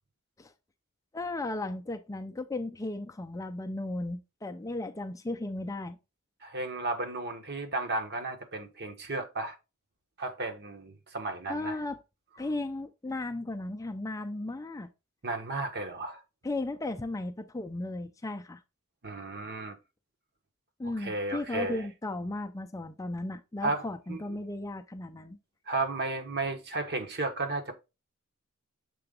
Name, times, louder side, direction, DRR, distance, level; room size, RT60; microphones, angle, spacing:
voice 1, 1.1-6.0 11.5-12.0 12.4-14.9 16.4-18.6 20.8-25.4, left 2 dB, 15° left, 0.4 m, -35 dB
voice 2, 6.4-9.5 10.2-11.8 15.2-16.2 19.0-19.8 21.0-21.9 23.6-24.2 25.7-27.8, right 2 dB, 50° right, 1.2 m, -33 dB
6.8 x 3.8 x 3.8 m
head